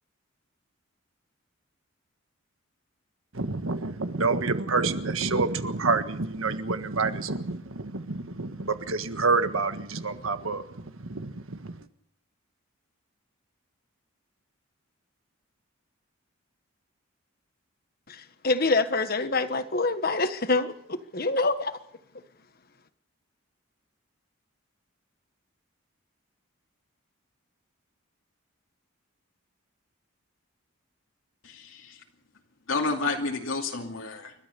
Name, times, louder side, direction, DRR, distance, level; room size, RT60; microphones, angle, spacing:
voice 1, 3.3-11.9, right 3 dB, 75° right, 1.5 m, -28 dB
voice 2, 18.1-21.8, left 3 dB, 45° left, 1.4 m, -26 dB
voice 3, 31.4-32.0 32.7-34.3, left 3 dB, 70° left, 2.6 m, -30 dB
30.0 x 13.0 x 6.9 m
head